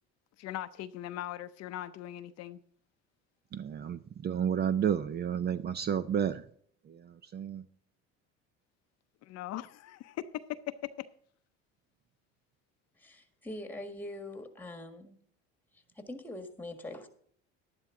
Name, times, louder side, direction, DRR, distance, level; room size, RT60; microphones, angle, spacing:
voice 1, 0.4-2.6 9.2-11.1, left 13 dB, 55° left, 0.6 m, -40 dB
voice 2, 3.5-6.5 6.8-7.7, right 8 dB, 35° right, 0.5 m, -31 dB
voice 3, 13.0-15.1 15.9-17.1, left 1 dB, 5° left, 1.6 m, -43 dB
11.5 x 11.0 x 3.7 m
cardioid pair, 110°, 30 cm